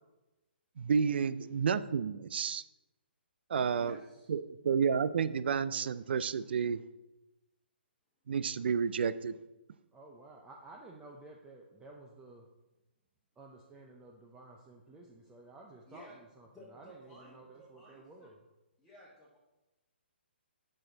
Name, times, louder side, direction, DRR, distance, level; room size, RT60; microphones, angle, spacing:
voice 1, 0.8-2.6 3.5-4.0 4.3-6.8 8.3-9.4, right 6 dB, 65° right, 15 dB, 0.4 m, -30 dB
voice 2, 3.8-4.3 15.9-16.2 16.5-18.3 18.8-19.4, equal, 5° left, -8 dB, 1.4 m, -54 dB
voice 3, 9.9-12.5 13.4-18.4, right 2 dB, 10° right, 0 dB, 0.6 m, -53 dB
7.5 x 6.3 x 3.9 m, 1.0 s
hypercardioid pair, 150°, 6 cm